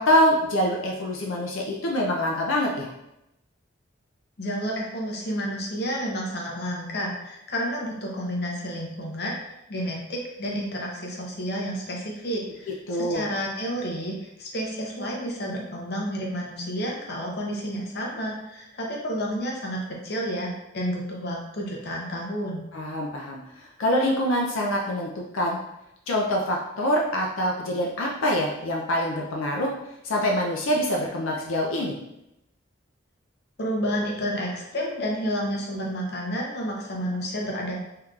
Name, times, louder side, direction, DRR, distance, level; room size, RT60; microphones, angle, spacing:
voice 1, 0.0-2.9 12.9-13.2 22.7-25.6 26.1-29.7 30.0-32.0, equal, 85° left, -1 dB, 0.5 m, -25 dB
voice 2, 4.4-22.7 33.6-37.8, equal, 50° left, -1 dB, 0.7 m, -30 dB
3.6 x 2.8 x 2.3 m, 0.86 s
head